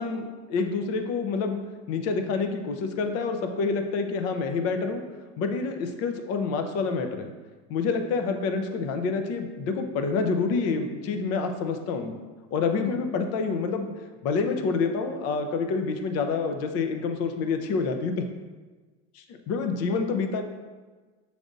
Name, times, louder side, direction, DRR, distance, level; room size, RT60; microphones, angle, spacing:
voice 1, 0.0-1.6 1.9-5.0 5.4-7.3 7.7-12.2 12.5-13.9 14.2-18.2 19.1-20.4, left 4 dB, 50° left, 6 dB, 0.6 m, -27 dB
6.0 x 3.4 x 2.6 m, 1.3 s
supercardioid pair, 110°, 31 cm